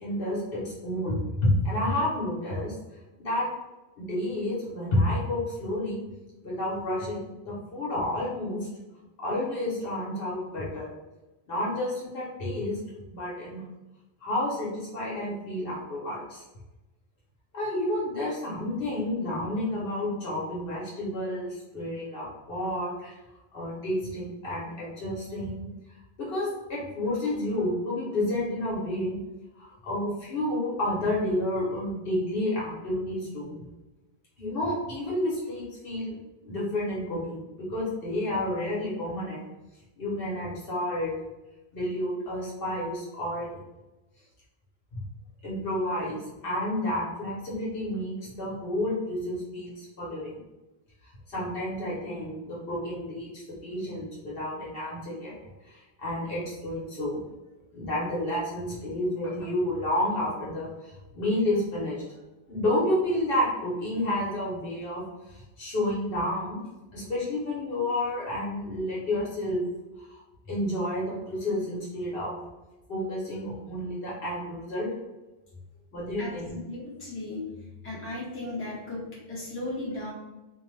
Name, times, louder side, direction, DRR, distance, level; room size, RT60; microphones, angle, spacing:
voice 1, 0.0-2.7 3.2-3.5 4.0-6.0 6.4-8.7 9.2-10.9 11.5-12.8 13.1-13.6 14.2-16.4 17.5-23.2 23.5-25.6 26.2-29.1 29.6-33.6 34.4-36.1 36.4-39.4 40.0-41.1 41.7-43.6 44.9-45.0 45.4-50.4 51.3-55.4 55.6-57.2 57.7-62.0 62.5-65.0 65.3-66.6 66.9-69.6 70.0-70.2 70.5-72.4 72.9-74.9 75.9-76.6, left 1 dB, 65° left, -6 dB, 1.1 m, -30 dB
voice 2, 76.6-77.5 77.8-80.1, left 2 dB, 15° left, -7 dB, 0.8 m, -36 dB
2.7 x 2.1 x 3.1 m, 1.0 s
omnidirectional pair, 1.1 m